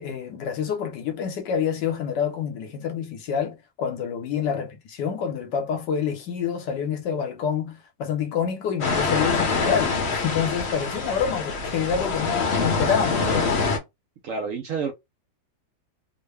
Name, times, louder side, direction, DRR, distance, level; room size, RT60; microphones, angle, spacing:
voice 1, 0.0-13.5, left 7 dB, 75° left, 1.4 m, -27 dB
sound 1, 8.8-13.8, left 4 dB, 50° left, 0.9 m, -25 dB
voice 2, 14.2-14.9, right 5 dB, 70° right, 0.7 m, -29 dB
3.6 x 2.1 x 3.2 m
omnidirectional pair, 1.9 m